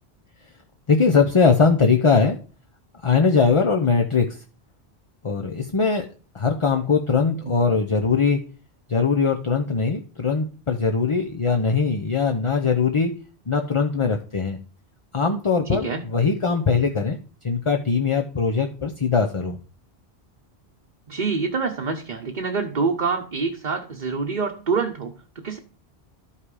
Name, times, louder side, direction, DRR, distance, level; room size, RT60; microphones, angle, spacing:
voice 1, 0.9-2.4 3.0-4.3 5.2-6.0 6.3-8.4 8.9-13.1 13.5-14.6 15.1-17.2 17.4-19.6, left 5 dB, 30° left, 5 dB, 0.8 m, -21 dB
voice 2, 15.7-16.0 21.1-25.6, right 4 dB, 50° right, 2 dB, 1.0 m, -26 dB
12.5 x 5.7 x 4.9 m, 0.39 s
omnidirectional pair, 1.1 m